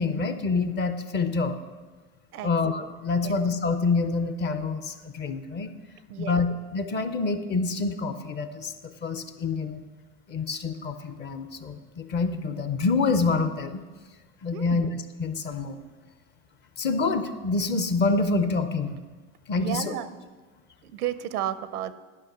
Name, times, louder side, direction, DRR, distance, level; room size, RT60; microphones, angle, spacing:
voice 1, 0.0-1.6 2.4-5.7 6.2-9.8 10.3-13.8 14.4-14.9 15.2-15.8 16.8-19.0 19.5-19.9, left 4 dB, 25° left, 10 dB, 0.5 m, -27 dB
voice 2, 6.1-6.4 14.5-14.9 19.6-20.1 20.8-21.9, right 11 dB, 90° right, 14 dB, 0.7 m, -32 dB
10.5 x 5.5 x 6.5 m, 1.3 s
hypercardioid pair, 110°, 45 cm